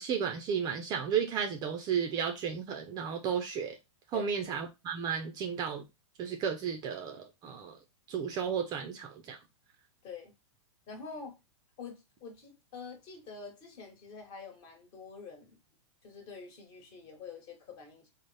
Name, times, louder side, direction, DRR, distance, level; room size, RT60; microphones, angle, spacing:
voice 1, 0.0-3.8 4.1-5.8 6.2-7.8 8.1-9.4, right 7 dB, 25° right, 0.4 m, -33 dB
voice 2, 10.0-10.3 10.9-11.4 11.8-15.6 16.0-18.1, left 5 dB, 35° left, 1.2 m, -46 dB
3.9 x 2.0 x 3.2 m
hypercardioid pair, 140°, 16 cm